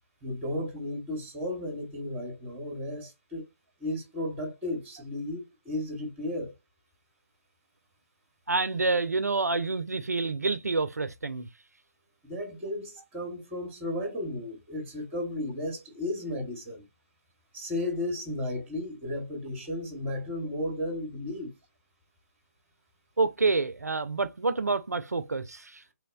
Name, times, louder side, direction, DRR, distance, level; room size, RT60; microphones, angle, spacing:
voice 1, 0.2-3.5 3.8-6.5 12.2-16.8 17.5-21.5, left 1 dB, 15° right, 0.8 m, -34 dB
voice 2, 8.5-11.5 23.2-25.9, right 3 dB, 80° right, 0.4 m, -28 dB
3.0 x 2.0 x 2.2 m
figure-of-eight pair, 140°, 9 cm